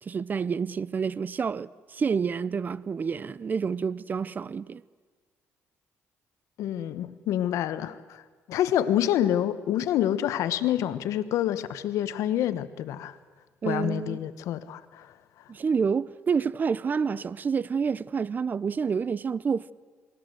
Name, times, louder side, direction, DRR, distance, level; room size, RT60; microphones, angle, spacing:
voice 1, 0.0-4.8 13.6-14.2 15.5-19.7, right 6 dB, 35° right, 0.6 m, -28 dB
voice 2, 6.6-8.2 8.5-13.1 13.6-15.1, left 11 dB, 80° left, 1.1 m, -27 dB
28.0 x 20.0 x 7.9 m
cardioid pair, 100°, 5 cm